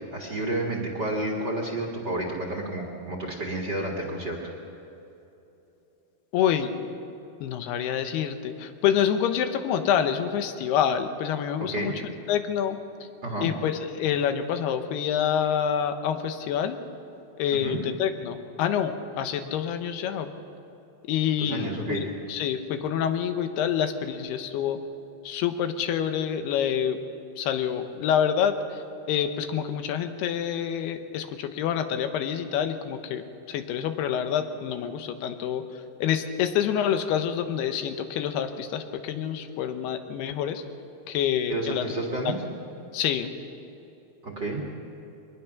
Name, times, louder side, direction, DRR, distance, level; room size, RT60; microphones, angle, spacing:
voice 1, 0.1-4.4 11.7-11.9 13.2-13.5 17.5-17.8 21.4-22.1 41.5-42.4 44.2-44.6, right 2 dB, 35° right, -1 dB, 1.9 m, -30 dB
voice 2, 6.3-6.7 7.4-12.8 13.4-16.8 17.4-20.3 21.1-24.8 25.2-27.0 27.4-28.8 29.1-35.6 36.0-40.6 41.1-41.9 42.2-42.3 42.9-43.3, left 9 dB, 85° left, 8 dB, 3.0 m, -27 dB
23.0 x 20.0 x 5.9 m, 2.9 s
omnidirectional pair, 4.5 m